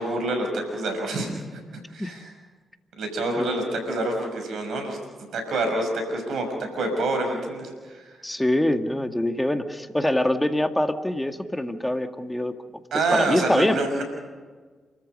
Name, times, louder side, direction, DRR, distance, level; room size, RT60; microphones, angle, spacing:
voice 1, 0.0-2.2 3.0-8.0 12.9-14.0, right 2 dB, 75° right, 5 dB, 6.0 m, -27 dB
voice 2, 8.2-12.5 13.1-13.8, left 1 dB, 10° left, 7 dB, 2.1 m, -24 dB
29.0 x 14.0 x 6.6 m, 1.4 s
hypercardioid pair, 40°, 0 cm